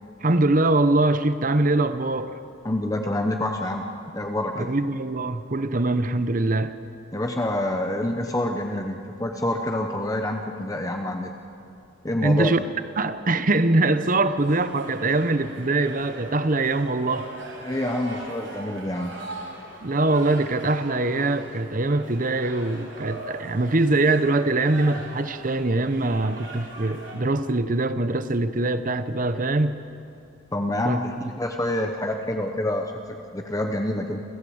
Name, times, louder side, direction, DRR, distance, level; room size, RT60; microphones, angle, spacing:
voice 1, 0.2-2.3 4.6-6.8 12.2-12.6 13.0-17.3 19.8-29.8 30.8-31.0, right 2 dB, 40° right, 11 dB, 0.9 m, -23 dB
voice 2, 2.6-4.7 7.1-11.3 12.0-12.5 17.6-19.2 30.5-34.2, left 1 dB, 15° left, 3 dB, 1.0 m, -27 dB
sound 1, 14.4-27.1, right 2 dB, 75° right, 5.9 m, -40 dB
28.0 x 15.5 x 8.0 m, 2.6 s
head